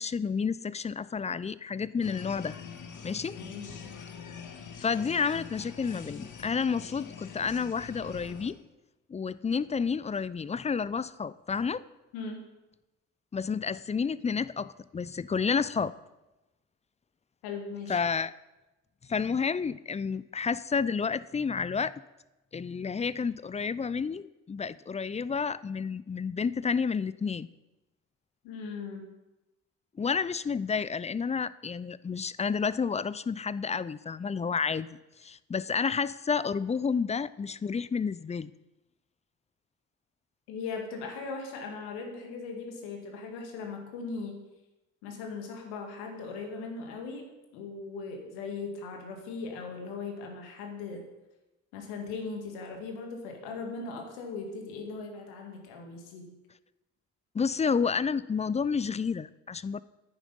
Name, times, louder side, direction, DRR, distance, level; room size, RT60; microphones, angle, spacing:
voice 1, 0.0-2.5 3.0-3.4 4.8-8.6 9.1-11.8 13.3-15.9 17.9-18.3 19.1-21.9 22.5-27.5 30.0-38.5 57.3-59.8, left 5 dB, 20° left, 18 dB, 0.4 m, -30 dB
sound 1, 2.0-8.5, left 6 dB, 50° left, 1.6 m, -44 dB
voice 2, 3.4-3.7 12.1-12.5 17.4-18.0 28.4-29.2 40.5-44.4 45.0-51.1 51.7-56.4, left 4 dB, 75° left, 3 dB, 2.0 m, -39 dB
10.0 x 9.3 x 5.4 m, 1.0 s
hypercardioid pair, 45°, 38 cm